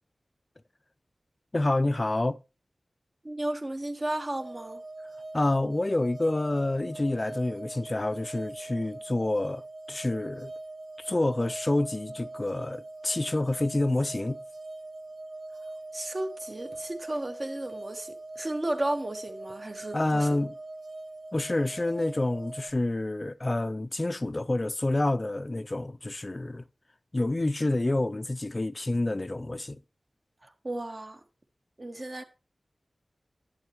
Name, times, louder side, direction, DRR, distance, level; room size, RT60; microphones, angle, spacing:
voice 1, 1.5-2.4 5.3-9.6 9.9-10.5 11.0-14.4 19.9-20.5 21.3-26.6 27.1-29.8, left 2 dB, 30° left, 0.4 m, -28 dB
voice 2, 3.2-4.8 15.9-20.4 30.4-31.2 31.8-32.2, right 1 dB, 35° right, 1.1 m, -34 dB
sound 1, 4.4-22.7, right 2 dB, 85° right, 1.8 m, -42 dB
10.5 x 8.6 x 3.0 m
wide cardioid pair, 80°, 0 cm